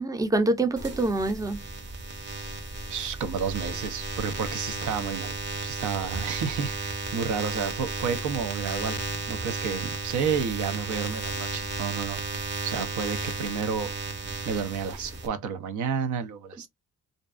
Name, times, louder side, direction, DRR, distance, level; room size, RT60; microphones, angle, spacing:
voice 1, 0.0-1.6, right 2 dB, 10° right, 0.5 m, -25 dB
sound 1, 0.8-15.3, right 3 dB, 35° right, 0.8 m, -34 dB
voice 2, 2.9-5.3 5.6-9.0 9.3-13.9 14.5-16.7, right 6 dB, 75° right, 0.6 m, -31 dB
2.6 x 2.2 x 2.4 m
cardioid pair, 90°, 30 cm